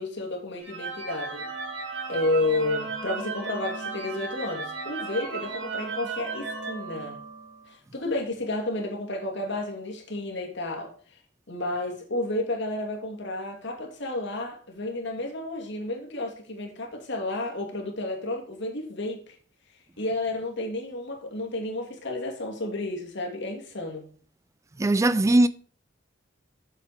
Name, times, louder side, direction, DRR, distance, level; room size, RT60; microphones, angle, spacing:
voice 1, 0.0-1.5 2.1-7.2 7.7-11.2 11.5-19.4 20.0-24.1, left 2 dB, 65° left, 2.5 m, -31 dB
sound 1, 0.6-7.6, right 4 dB, 85° right, 2.4 m, -35 dB
voice 2, 24.8-25.5, right 1 dB, 15° right, 0.3 m, -19 dB
8.1 x 7.2 x 5.1 m
head